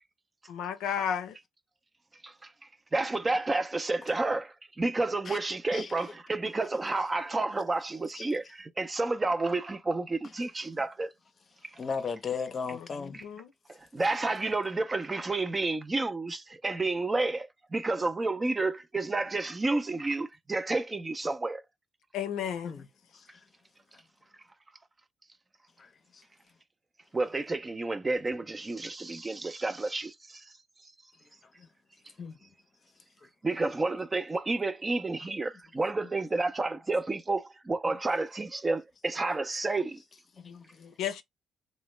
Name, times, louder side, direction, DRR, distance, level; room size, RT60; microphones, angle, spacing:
voice 1, 0.5-1.4 13.0-13.5 22.1-22.7 41.0-41.2, left 8 dB, 85° left, 0.5 m, -32 dB
voice 2, 2.9-11.1 13.9-21.6 27.1-30.1 33.4-40.0, right 3 dB, 25° right, 0.5 m, -30 dB
voice 3, 5.7-6.1 8.1-8.3 11.7-13.2 22.6-22.9 25.8-26.2 31.4-31.7 32.2-32.5 36.0-36.1 37.8-38.0 39.2-39.4 40.4-40.9, left 5 dB, 45° left, 0.6 m, -37 dB
3.1 x 2.1 x 3.0 m
cardioid pair, 90°, 0 cm